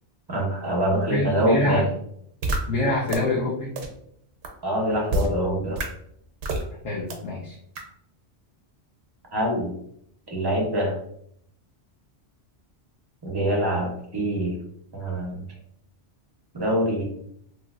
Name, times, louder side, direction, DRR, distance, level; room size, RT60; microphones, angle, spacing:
voice 1, 0.3-1.8 4.6-5.8 9.3-9.7 10.3-11.0 13.2-14.6 14.9-15.4 16.5-17.0, equal, 25° right, -1 dB, 0.6 m, -24 dB
voice 2, 1.1-1.8 2.7-3.7 6.8-7.5, left 1 dB, 85° left, -7 dB, 1.0 m, -25 dB
sound 1, 2.4-2.6 3.1-3.2 3.8-3.9 4.4-4.5 5.1-5.3 5.8-5.9 6.4-6.6 7.1-7.2 7.8-7.9, right 2 dB, 85° right, 0.9 m, -25 dB
3.1 x 2.6 x 2.4 m, 0.71 s
omnidirectional pair, 1.2 m